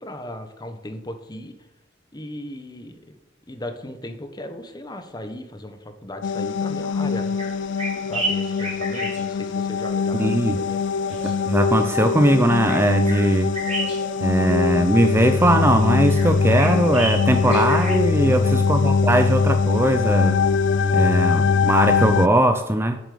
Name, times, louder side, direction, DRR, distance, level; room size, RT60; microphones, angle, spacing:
voice 1, 0.0-1.6 2.1-3.2 3.5-7.7 8.0-10.8 18.2-18.7, left 1 dB, 20° left, 7 dB, 1.1 m, -36 dB
sound 1, 6.2-22.3, left 5 dB, 75° left, 0.4 m, -22 dB
sound 2, 7.2-18.0, right 2 dB, 35° right, 3.7 m, -33 dB
voice 2, 10.1-10.6 11.2-13.5 14.2-20.4 20.9-23.0, right 1 dB, 15° right, 7 dB, 0.5 m, -20 dB
8.4 x 7.5 x 6.7 m, 0.90 s
head